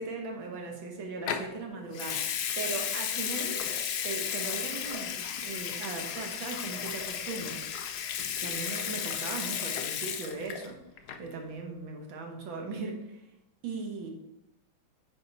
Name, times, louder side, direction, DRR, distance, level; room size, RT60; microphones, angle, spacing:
voice 1, 0.0-3.7 4.0-7.7 8.4-10.8 11.2-13.2 13.6-14.1, right 3 dB, 80° right, 2 dB, 2.0 m, -38 dB
Water tap faucet / Sink (filling or washing) / Liquid, 1.3-1.5 1.9-10.7 11.0-11.3, left 8 dB, 70° left, 1.0 m, -34 dB
9.0 x 4.3 x 4.0 m, 0.86 s
omnidirectional pair, 2.1 m